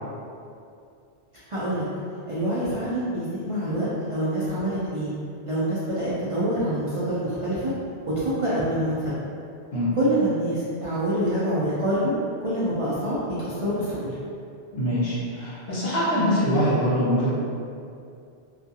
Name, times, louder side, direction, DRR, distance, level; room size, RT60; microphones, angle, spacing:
voice 1, 1.5-1.9 2.3-5.1 5.5-7.7 8.1-9.1 10.0-12.1 12.4-14.2, right 1 dB, 55° right, -10 dB, 0.3 m, -26 dB
voice 2, 14.7-17.3, equal, 65° left, -9 dB, 1.0 m, -23 dB
2.3 x 2.2 x 2.7 m, 2.5 s
omnidirectional pair, 1.1 m